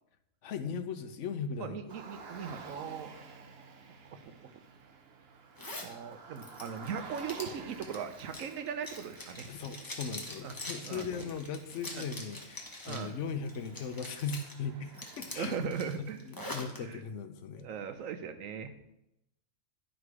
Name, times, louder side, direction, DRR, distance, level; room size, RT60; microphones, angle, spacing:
voice 1, 0.4-2.0 9.5-15.7 16.0-17.7, left 6 dB, 70° left, 9 dB, 1.0 m, -38 dB
voice 2, 1.6-3.3 4.1-4.5 5.8-9.5 10.4-10.5 10.8-11.0 11.9-12.0 12.9-13.2 15.4-16.2 16.8-17.0 17.6-18.8, right 7 dB, 90° right, 8 dB, 1.2 m, -39 dB
Car, 1.9-15.6, right 4 dB, 55° right, 1.0 m, -51 dB
Zipper (clothing), 5.6-5.9 6.4-13.1 13.5-14.5 14.9-16.8, left 1 dB, 20° left, 1.0 m, -44 dB
11.0 x 3.9 x 4.7 m, 0.84 s
omnidirectional pair, 1.3 m